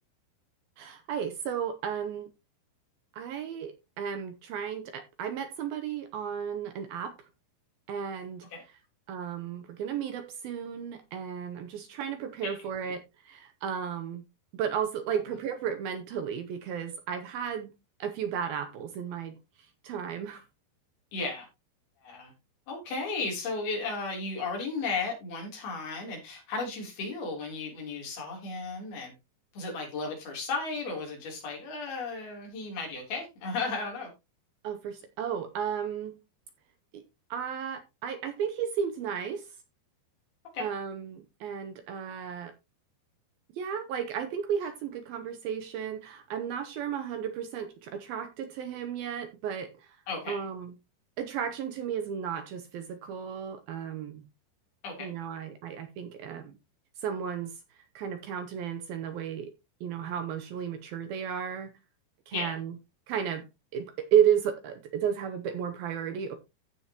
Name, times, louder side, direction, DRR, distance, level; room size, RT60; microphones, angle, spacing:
voice 1, 0.8-2.3 3.1-7.2 7.9-8.5 9.1-14.2 14.5-17.7 18.0-19.4 19.8-20.4 34.6-36.2 36.9-37.0 37.3-39.5 40.6-42.5 43.6-50.0 50.3-50.7 51.2-54.2 55.0-56.6 57.0-57.5 58.0-59.5 59.8-61.7 62.3-62.7 63.1-63.4 63.7-66.4, right 8 dB, 75° right, 2.4 m, -33 dB
voice 2, 21.1-21.5 22.0-22.3 22.7-29.1 29.5-34.1 40.5-40.7 50.1-50.5 54.8-55.1 62.3-62.6, left 3 dB, 60° left, 5.2 m, -34 dB
15.0 x 6.2 x 2.9 m
omnidirectional pair, 5.0 m